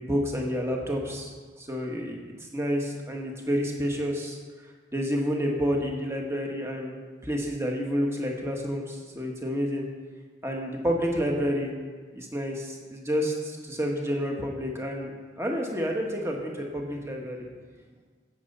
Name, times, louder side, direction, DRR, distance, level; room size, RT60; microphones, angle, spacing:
voice 1, 0.0-4.4 4.9-9.8 10.4-11.7 12.1-17.5, equal, 15° right, 0 dB, 1.5 m, -29 dB
14.5 x 7.0 x 5.5 m, 1.5 s
head